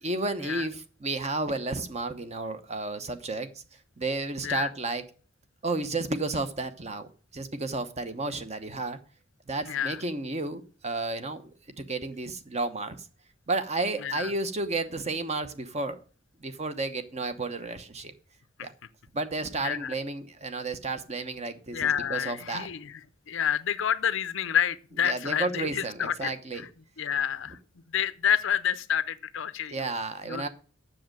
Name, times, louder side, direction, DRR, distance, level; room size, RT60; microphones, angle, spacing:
voice 1, 0.0-3.5 4.0-5.0 5.6-7.1 7.3-9.0 9.5-11.4 11.8-13.0 13.5-16.0 16.4-18.1 18.6-18.7 19.1-22.7 25.0-26.6 29.7-30.5, right 3 dB, 35° right, 0.9 m, -32 dB
voice 2, 9.7-10.0 14.0-14.3 18.6-18.7 19.6-19.9 21.7-23.0 23.3-26.7 27.0-27.6 27.9-29.9 30.2-30.5, left 9 dB, 65° left, 0.6 m, -29 dB
7.6 x 6.5 x 7.5 m
head